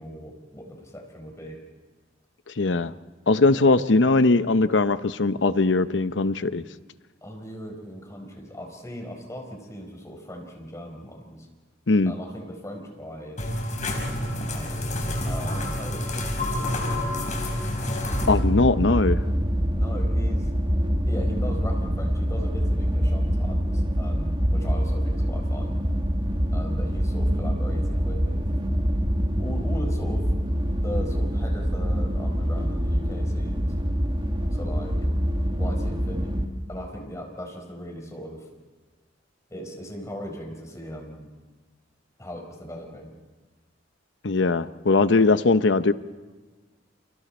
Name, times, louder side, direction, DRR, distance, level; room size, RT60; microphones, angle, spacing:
voice 1, 0.0-1.6 7.2-11.5 12.1-13.4 14.1-17.0 19.7-20.5 21.0-25.8 26.5-28.5 29.4-30.3 30.8-33.7 34.5-35.1 35.5-36.4 36.7-38.5 39.5-41.3 42.2-43.1, equal, 15° left, 2 dB, 4.4 m, -39 dB
voice 2, 2.6-2.9 3.3-6.6 11.9-12.1 18.3-19.2 44.2-45.9, left 3 dB, 70° left, 13 dB, 0.8 m, -20 dB
sound 1, 13.4-18.3, left 1 dB, 40° left, 4.4 m, -28 dB
sound 2, 18.1-36.5, equal, 25° right, 1.9 m, -25 dB
29.5 x 26.5 x 4.3 m, 1.4 s
head